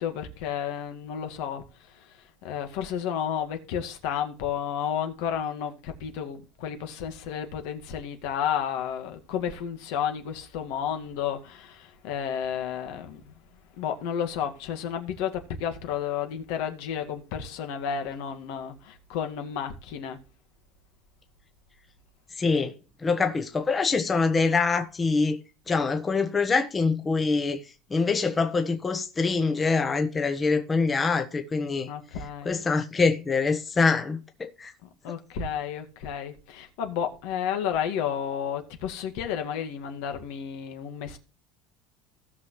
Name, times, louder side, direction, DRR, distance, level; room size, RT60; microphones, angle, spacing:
voice 1, 0.0-20.2 31.9-32.6 34.8-41.2, left 8 dB, 75° left, 1.9 m, -32 dB
voice 2, 22.4-22.7 23.0-25.4 25.7-27.6 27.9-31.9 32.5-34.7, left 4 dB, 20° left, 1.0 m, -24 dB
17.0 x 6.2 x 3.1 m
supercardioid pair, 130°, 0 cm